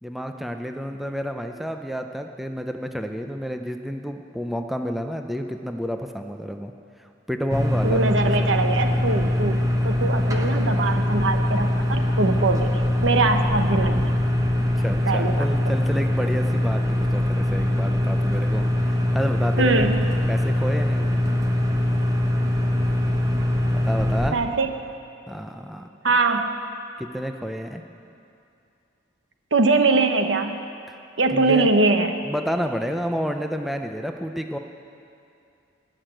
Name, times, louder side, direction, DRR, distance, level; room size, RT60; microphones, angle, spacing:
voice 1, 0.0-6.7 7.0-8.5 14.6-19.9 20.3-21.2 23.7-24.4 25.3-25.9 27.0-27.8 30.9-31.0 31.3-31.7 32.2-34.6, equal, ahead, 5 dB, 0.5 m, -30 dB
sound 1, 7.5-24.3, left 1 dB, 15° right, 1.0 m, -22 dB
voice 2, 7.8-12.7 13.0-14.1 15.1-15.3 19.6-20.0 24.3-24.7 26.0-26.5 29.5-30.6 31.2-32.2, right 3 dB, 75° right, 6 dB, 1.0 m, -22 dB
19.0 x 6.6 x 9.0 m, 2.6 s
head